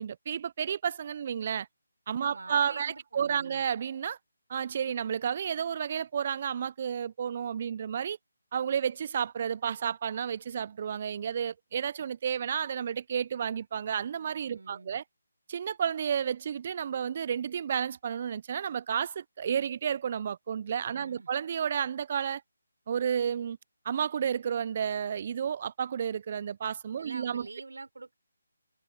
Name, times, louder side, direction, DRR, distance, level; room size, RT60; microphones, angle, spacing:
voice 1, 0.0-1.7 2.1-4.2 4.5-8.2 8.5-15.0 15.5-22.4 22.9-23.6 23.9-27.5, right 8 dB, 40° right, 0.3 m, -31 dB
voice 2, 2.2-3.6 14.5-15.0 20.9-21.3 27.0-28.1, right 3 dB, 80° right, 4.1 m, -46 dB
figure-of-eight pair, 160°, 0 cm